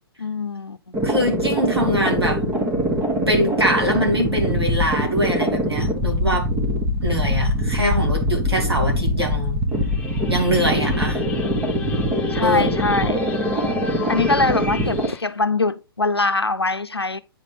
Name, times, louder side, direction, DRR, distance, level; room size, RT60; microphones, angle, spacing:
voice 1, 0.2-0.9 12.3-13.3 14.1-17.2, left 3 dB, 90° left, 0.6 m, -23 dB
sound 1, 0.9-15.1, equal, 15° right, 1.4 m, -23 dB
voice 2, 1.0-2.4 3.3-6.6 7.0-9.6 10.3-11.2 12.4-12.7, equal, 85° right, 2.7 m, -23 dB
sound 2, 9.7-15.2, left 5 dB, 10° left, 0.7 m, -33 dB
8.6 x 4.1 x 3.5 m
figure-of-eight pair, 125°, 13 cm